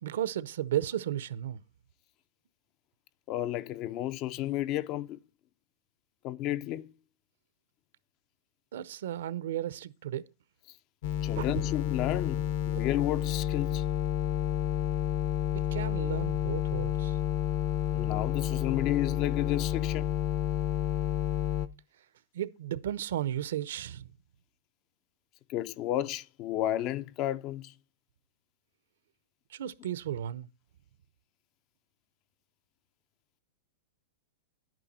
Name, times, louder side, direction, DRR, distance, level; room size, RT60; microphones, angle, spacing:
voice 1, 0.0-1.6 8.7-10.2 11.4-11.5 15.5-17.2 22.3-24.1 29.5-30.5, right 11 dB, 75° right, 0.8 m, -34 dB
voice 2, 3.3-5.2 6.2-6.9 11.2-13.8 17.9-20.1 25.5-27.7, left 13 dB, 35° left, 0.5 m, -32 dB
sound 1, 11.0-21.7, left 11 dB, 55° left, 0.9 m, -30 dB
11.0 x 9.1 x 4.2 m
supercardioid pair, 155°, 0 cm